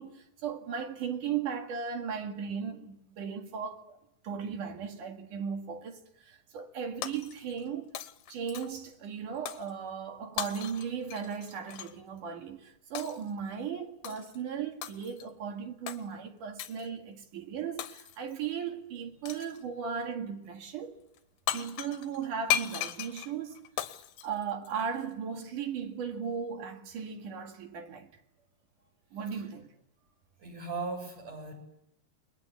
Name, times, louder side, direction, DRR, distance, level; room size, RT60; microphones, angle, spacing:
voice 1, 0.0-4.0 4.2-8.0 8.3-21.0 21.5-23.7 24.2-28.1 29.1-29.7, right 7 dB, 60° right, 3.4 m, -37 dB
Shatter, 7.0-7.7 8.0-8.9 9.5-9.7 10.4-12.0 13.0-13.3 14.0-14.4 14.8-15.3 15.9-16.0 16.6-16.9 17.8-18.3 19.3-19.6 21.2-21.3 21.5-25.1, left 12 dB, 85° left, 3.2 m, -37 dB
voice 2, 30.4-31.5, right 3 dB, 40° right, 8.0 m, -38 dB
29.5 x 22.5 x 8.5 m
omnidirectional pair, 4.4 m